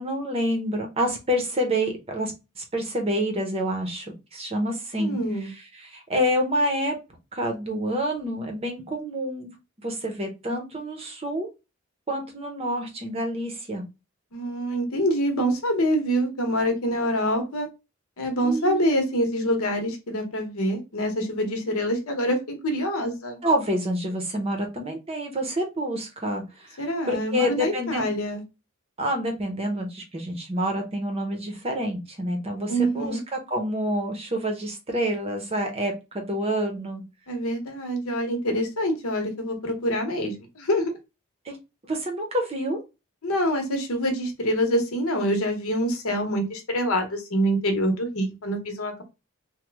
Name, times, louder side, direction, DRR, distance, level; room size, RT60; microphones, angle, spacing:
voice 1, 0.0-7.0 7.3-9.5 9.8-11.5 12.1-13.8 18.4-18.9 23.4-28.1 29.0-37.0 41.4-41.6 41.8-42.8, equal, 25° right, 3 dB, 0.6 m, -28 dB
voice 2, 5.0-5.5 14.3-17.7 18.2-23.4 26.8-28.4 32.7-33.2 37.3-40.9 43.2-49.0, equal, 80° left, 4 dB, 0.9 m, -25 dB
3.0 x 2.1 x 3.3 m, 0.26 s
head